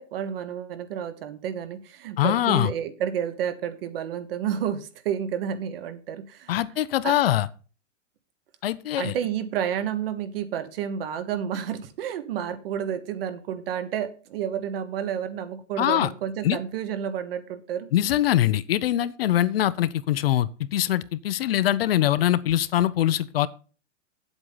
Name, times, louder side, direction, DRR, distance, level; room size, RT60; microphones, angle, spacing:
voice 1, 0.0-6.6 7.0-7.1 9.0-17.9, right 9 dB, 50° right, 1.3 m, -30 dB
voice 2, 2.2-2.7 6.5-7.5 8.6-9.1 15.8-16.1 16.4-16.6 17.9-23.5, left 12 dB, 50° left, 0.6 m, -23 dB
8.2 x 8.0 x 5.4 m
supercardioid pair, 165°, 38 cm